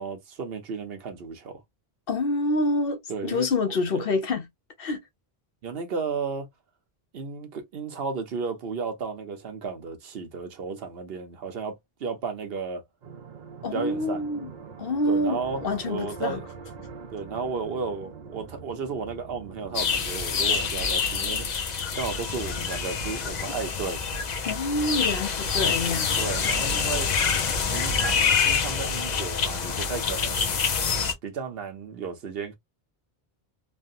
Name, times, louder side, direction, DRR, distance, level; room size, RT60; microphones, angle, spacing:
voice 1, 0.0-1.6 3.1-4.1 5.6-6.5 7.1-11.7 12.0-12.8 13.7-14.2 15.1-15.6 15.9-16.4 17.1-21.5 21.9-24.0 26.2-27.1 27.7-30.5 31.2-32.6, right 5 dB, 75° right, 1.0 m, -33 dB
voice 2, 2.1-4.5 4.8-5.0 13.6-14.5 14.8-16.4 24.4-26.2, left 2 dB, 65° left, 1.0 m, -27 dB
sound 1, 13.0-21.5, right 5 dB, 55° right, 0.6 m, -43 dB
sound 2, 19.7-31.1, left 5 dB, 50° left, 0.7 m, -26 dB
3.2 x 2.2 x 2.5 m
omnidirectional pair, 1.0 m